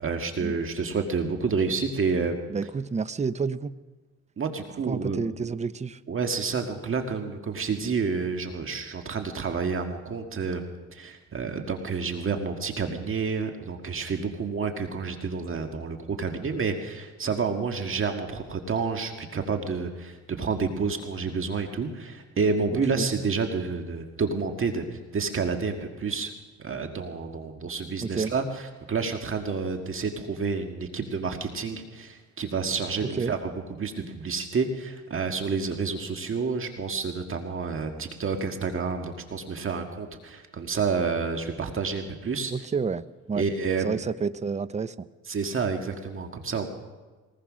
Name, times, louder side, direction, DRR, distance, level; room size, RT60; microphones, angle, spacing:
voice 1, 0.0-2.4 4.4-5.2 6.1-10.6 10.9-26.3 26.6-42.5 43.4-44.0 45.3-46.7, right 5 dB, 45° right, 4 dB, 1.8 m, -29 dB
voice 2, 2.5-3.7 4.8-6.0 23.0-23.1 28.0-28.3 33.0-33.3 42.5-43.5 43.8-45.1, right 5 dB, 25° right, 15 dB, 0.7 m, -30 dB
22.0 x 19.0 x 6.3 m, 1.3 s
cardioid pair, 90°, 30 cm